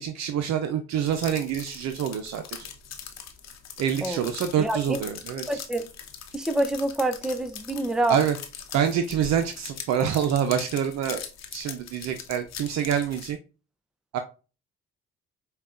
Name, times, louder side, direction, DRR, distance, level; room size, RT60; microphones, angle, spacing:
voice 1, 0.0-2.7 3.8-5.6 8.1-8.4 8.7-11.2 11.5-13.4 14.1-14.2, right 8 dB, 65° right, 7 dB, 0.5 m, -26 dB
sound 1, 1.0-13.3, left 7 dB, 60° left, 0.9 m, -41 dB
voice 2, 4.6-5.0 5.5-5.9 6.3-8.2, right 1 dB, ahead, 8 dB, 0.5 m, -26 dB
5.3 x 2.3 x 2.4 m, 0.32 s
supercardioid pair, 60°, 30 cm